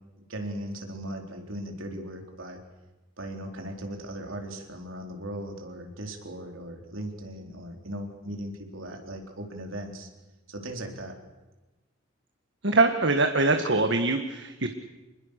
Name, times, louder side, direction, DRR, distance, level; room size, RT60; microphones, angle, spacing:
voice 1, 0.3-2.6 3.2-10.1 10.5-11.2, right 1 dB, 85° right, 3 dB, 4.0 m, -38 dB
voice 2, 12.6-14.7, right 3 dB, 60° right, 6 dB, 1.5 m, -23 dB
27.0 x 20.5 x 6.6 m, 1.1 s
head